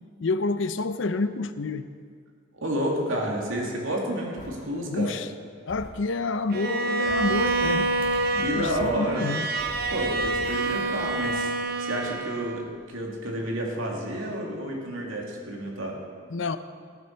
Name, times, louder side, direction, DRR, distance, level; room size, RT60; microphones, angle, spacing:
voice 1, 0.2-1.9 4.9-5.3 5.7-8.0 8.3-9.5 16.3-16.6, left 3 dB, 70° left, 11 dB, 0.6 m, -28 dB
voice 2, 2.5-5.2 8.4-9.3 9.9-11.5 11.8-16.0, right 1 dB, 85° right, -1 dB, 2.5 m, -30 dB
sound 1, 4.4-4.5 5.7-5.9 7.0-8.9 9.6-11.3, left 1 dB, 40° left, 2.7 m, -43 dB
Bowed string instrument, 6.5-12.8, right 2 dB, 50° right, 0.8 m, -27 dB
18.0 x 9.7 x 4.5 m, 2.1 s
head